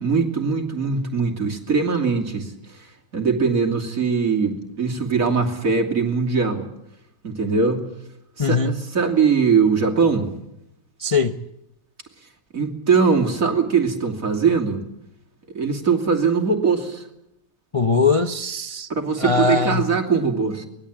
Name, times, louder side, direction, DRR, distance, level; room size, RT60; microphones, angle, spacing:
voice 1, 0.0-6.7 7.2-7.8 8.4-10.3 12.5-14.8 15.5-17.0 18.9-20.7, right 5 dB, 45° right, 3.2 m, -21 dB
voice 2, 8.4-8.8 11.0-11.4 17.7-18.9 19.2-19.9, left 4 dB, 50° left, 0.3 m, -21 dB
24.0 x 20.0 x 8.6 m
omnidirectional pair, 2.1 m